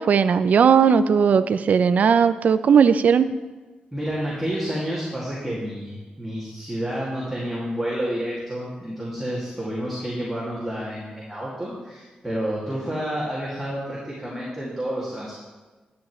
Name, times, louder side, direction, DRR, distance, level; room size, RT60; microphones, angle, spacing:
voice 1, 0.0-3.3, right 6 dB, 60° right, 13 dB, 0.4 m, -17 dB
voice 2, 3.9-15.4, equal, 5° right, -8 dB, 2.3 m, -29 dB
11.5 x 9.1 x 3.2 m, 1.3 s
wide cardioid pair, 110°, 3 cm